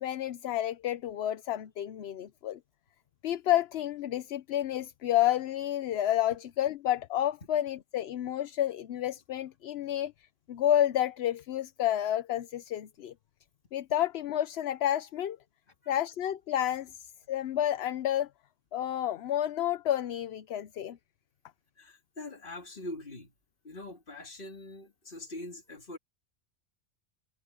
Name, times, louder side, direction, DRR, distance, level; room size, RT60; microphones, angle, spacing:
voice 1, 0.0-2.6 3.2-10.1 10.5-13.1 13.7-15.4 15.9-18.3 18.7-21.0, left 12 dB, 65° left, 0.8 m, -30 dB
voice 2, 21.8-23.3 23.6-26.0, left 2 dB, 45° left, 2.3 m, -43 dB
omnidirectional pair, 1.2 m